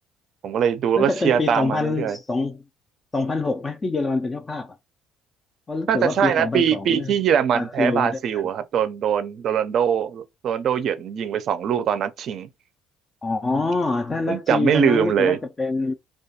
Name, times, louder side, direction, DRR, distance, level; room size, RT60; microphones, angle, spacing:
voice 1, 0.4-2.2 5.9-12.5 14.3-15.4, right 8 dB, 50° right, 0.4 m, -22 dB
voice 2, 1.0-2.6 3.1-4.8 5.7-7.1 7.5-8.4 13.2-15.9, left 3 dB, 20° left, 0.3 m, -25 dB
2.3 x 2.2 x 2.7 m
cardioid pair, 120°, 0 cm